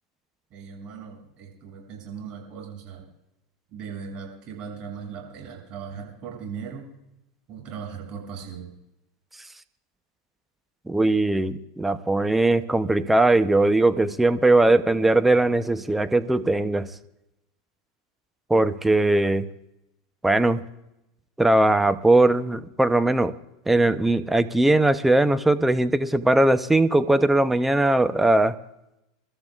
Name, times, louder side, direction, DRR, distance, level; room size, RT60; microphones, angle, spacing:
voice 1, 0.5-3.1 3.7-6.9 7.5-8.7, right 6 dB, 45° right, -1 dB, 7.0 m, -38 dB
voice 2, 10.9-16.9 18.5-19.5 20.2-20.6 21.4-23.3 23.7-28.5, right 2 dB, 5° right, 12 dB, 0.7 m, -20 dB
28.5 x 13.5 x 2.4 m, 0.88 s
hypercardioid pair, 110°, 2 cm